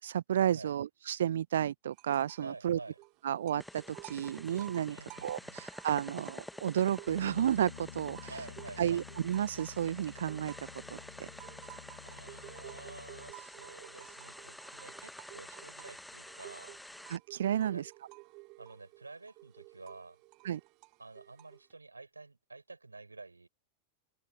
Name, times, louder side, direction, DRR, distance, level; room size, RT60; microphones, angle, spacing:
voice 1, 0.0-2.8 3.2-8.4 8.8-11.3 17.1-17.9 20.4-20.6, right 10 dB, 65° right, 0.7 m, -32 dB
sound 1, 1.9-2.6 2.8-7.5 7.9-21.7, right 27 dB, 40° right, 2.9 m, -54 dB
voice 2, 2.4-3.0 4.9-5.7 8.3-9.0 12.0-16.8 17.5-17.8 18.6-20.2 21.0-23.5, right 3 dB, 80° right, 5.9 m, -50 dB
sound 2, 3.6-17.2, left 1 dB, 5° left, 1.3 m, -49 dB
Bass guitar, 7.1-13.3, left 9 dB, 65° left, 1.2 m, -51 dB
open air
figure-of-eight pair, 90°, 0 cm